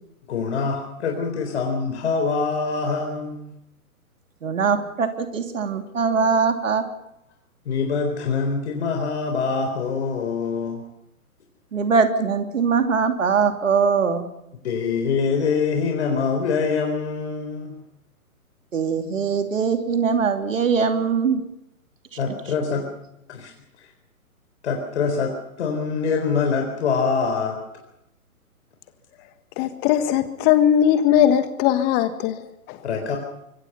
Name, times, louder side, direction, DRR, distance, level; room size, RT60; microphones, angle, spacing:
voice 1, 0.3-3.5 6.1-6.3 7.7-10.8 14.6-17.8 22.2-22.8 23.3-23.5 24.6-27.6 32.8-33.2, left 5 dB, 45° left, 4.2 m, -24 dB
voice 2, 4.4-6.8 11.7-14.3 18.7-21.4, right 5 dB, 60° right, 2.8 m, -21 dB
voice 3, 29.6-32.8, left 10 dB, 20° left, 1.6 m, -19 dB
25.0 x 23.5 x 5.7 m
figure-of-eight pair, 125°, 44 cm